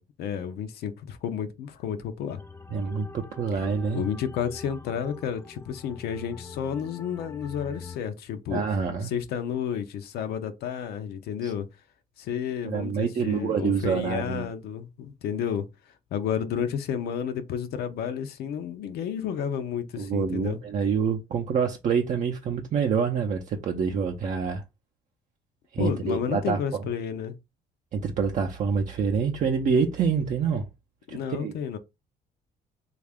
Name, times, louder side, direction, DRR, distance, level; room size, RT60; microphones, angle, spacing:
voice 1, 0.0-2.4 3.5-3.6 3.9-8.6 9.0-11.7 12.2-15.7 16.1-20.6 25.8-27.4 31.1-31.8, left 8 dB, 70° left, 0.5 m, -31 dB
sound 1, 2.3-8.0, left 4 dB, 15° left, 0.4 m, -44 dB
voice 2, 2.7-4.0 8.5-9.1 11.4-11.5 12.6-14.4 20.0-24.6 25.7-26.8 27.9-30.7 31.1-31.5, right 6 dB, 45° right, 0.5 m, -26 dB
3.2 x 2.4 x 3.4 m
cardioid pair, 110°, 17 cm